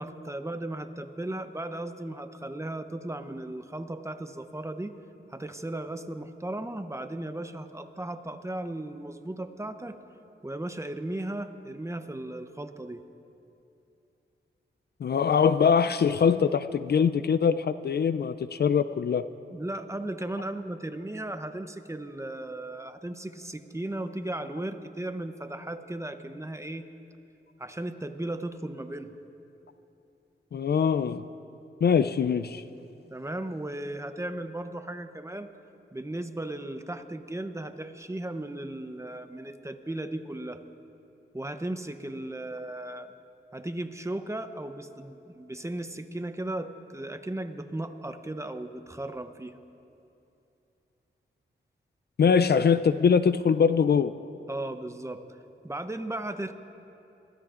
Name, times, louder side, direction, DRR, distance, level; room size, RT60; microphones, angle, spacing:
voice 1, 0.0-4.9 5.3-10.0 10.4-13.0 19.5-26.8 27.6-29.2 33.1-35.5 35.9-40.6 41.3-43.1 43.5-49.5 54.5-55.2 55.6-56.6, right 1 dB, 15° right, 8 dB, 0.7 m, -36 dB
voice 2, 15.0-19.2 30.5-31.2 31.8-32.6 52.2-54.1, left 6 dB, 55° left, 13 dB, 0.4 m, -23 dB
24.0 x 15.5 x 2.5 m, 2.8 s
cardioid pair, 65°, 20 cm